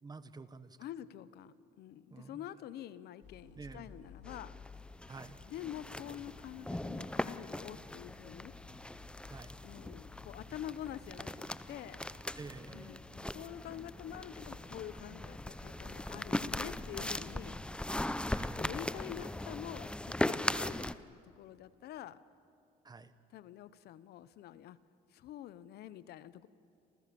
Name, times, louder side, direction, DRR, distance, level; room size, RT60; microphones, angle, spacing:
voice 1, 0.0-0.8 2.1-2.4 3.6-3.9 5.1-5.4 9.3-9.5 12.4-12.9 18.3-18.6 20.5-20.8 22.8-23.1, right 4 dB, 25° right, 12 dB, 1.2 m, -49 dB
voice 2, 0.8-4.5 5.5-8.5 9.6-12.0 12.7-17.6 18.5-22.2 23.3-24.8 25.1-26.5, left 11 dB, 70° left, 15 dB, 1.0 m, -47 dB
sound 1, 3.2-18.8, left 4 dB, 45° left, 4.5 m, -56 dB
sound 2, 4.3-20.9, left 1 dB, 5° left, 0.6 m, -40 dB
29.5 x 27.5 x 7.0 m, 2.5 s
cardioid pair, 110°, 17 cm